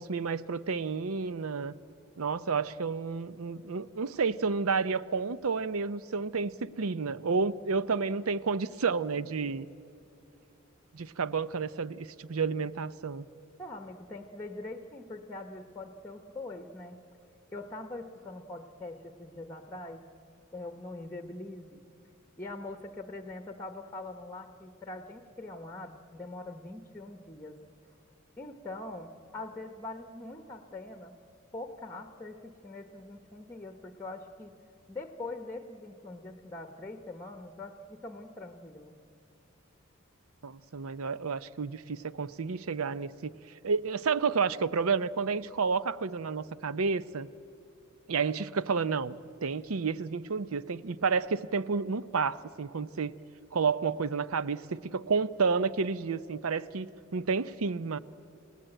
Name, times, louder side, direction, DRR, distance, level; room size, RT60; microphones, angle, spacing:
voice 1, 0.0-1.7 2.2-9.7 10.9-13.3 40.4-43.4 43.6-47.3 48.1-53.2 53.5-58.0, right 5 dB, 80° right, 16 dB, 0.6 m, -30 dB
voice 2, 13.6-17.0 17.5-20.1 20.5-21.8 22.4-28.0 28.4-31.2 31.5-34.6 34.9-39.0, left 2 dB, 10° left, 7 dB, 1.0 m, -43 dB
29.0 x 18.0 x 9.0 m, 2.6 s
head